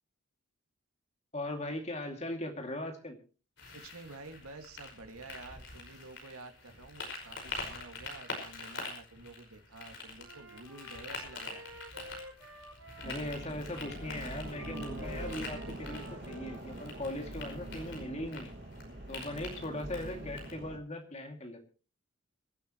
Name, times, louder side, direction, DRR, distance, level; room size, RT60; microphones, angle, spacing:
voice 1, 1.3-3.2 13.0-18.5 19.1-21.7, left 1 dB, 30° left, 3 dB, 2.6 m, -39 dB
sound 1, 3.6-20.5, left 3 dB, 55° left, 5.4 m, -45 dB
voice 2, 3.7-11.7, right 2 dB, 90° right, 6 dB, 2.3 m, -50 dB
Wind instrument woodwind instrument, 10.2-17.2, equal, 70° right, 5.9 m, -51 dB
sound 2, 13.0-20.8, right 1 dB, 50° right, 2.3 m, -43 dB
25.5 x 12.0 x 3.1 m, 0.36 s
head